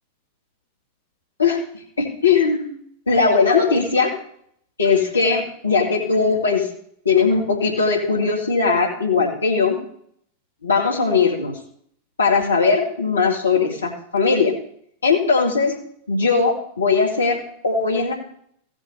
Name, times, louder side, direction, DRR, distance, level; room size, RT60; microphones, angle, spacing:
voice 1, 2.0-2.7 3.1-4.1 4.8-6.7 7.1-9.8 10.6-11.5 12.2-14.5 15.0-15.7 16.1-18.1, left 4 dB, 75° left, -1 dB, 2.1 m, -19 dB
15.0 x 5.2 x 6.4 m, 0.66 s
figure-of-eight pair, 90°, 0 cm